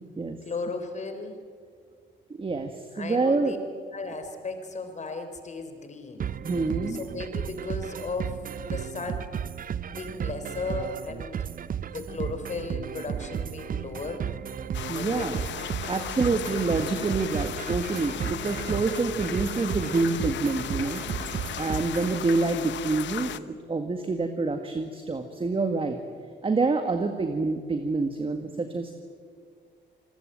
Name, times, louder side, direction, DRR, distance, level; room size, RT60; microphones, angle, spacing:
voice 1, 0.4-1.4 2.9-3.6 3.9-6.4 6.9-8.4 8.6-9.4 9.9-11.4 11.8-14.3 14.9-15.5 15.8-16.1, left 3 dB, 40° left, 7 dB, 4.0 m, -36 dB
voice 2, 2.3-3.6 6.4-7.0 14.9-15.4 15.9-21.0 21.6-26.0 26.4-28.9, right 3 dB, 30° right, 6 dB, 1.8 m, -27 dB
sound 1, 6.2-22.2, right 8 dB, 50° right, 0.7 m, -34 dB
sound 2, 14.7-23.4, left 11 dB, 75° left, 0.9 m, -36 dB
28.0 x 20.5 x 9.1 m, 2.1 s
cardioid pair, 115°, 19 cm